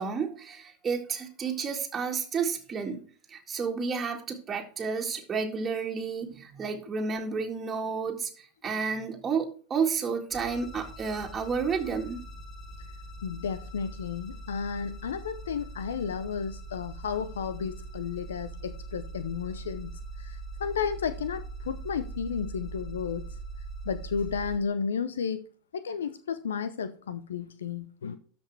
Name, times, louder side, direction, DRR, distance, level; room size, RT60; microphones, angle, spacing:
voice 1, 0.0-3.0 3.3-12.2, right 5 dB, 25° right, 1.9 m, -31 dB
sound 1, 10.3-24.6, right 2 dB, 30° left, 3.5 m, -41 dB
voice 2, 13.2-23.3 23.8-25.4 25.7-28.2, left 6 dB, 80° left, 0.7 m, -33 dB
13.0 x 5.3 x 3.4 m
hypercardioid pair, 85°, 0 cm